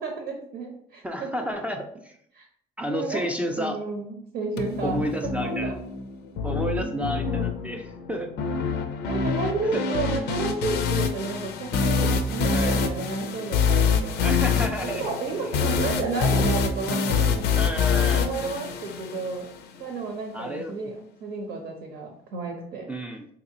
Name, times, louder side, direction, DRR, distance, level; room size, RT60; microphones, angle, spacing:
voice 1, 0.0-1.3 2.3-2.5 2.9-3.3 3.6-5.0 5.4-5.8 7.3-7.5 9.1-14.2 14.8-17.4 18.1-19.5 19.8-22.9, right 4 dB, 75° right, 1 dB, 0.8 m, -32 dB
voice 2, 1.0-2.2 2.8-3.8 4.8-5.7 6.4-8.3 9.1-9.4 9.7-9.9 12.5-12.8 14.2-15.1 17.5-18.3 20.3-20.7 22.9-23.3, equal, 10° right, 2 dB, 0.3 m, -31 dB
sound 1, 4.6-19.6, left 5 dB, 80° left, 0.5 m, -25 dB
3.9 x 2.9 x 2.7 m, 0.67 s
cardioid pair, 110°, 17 cm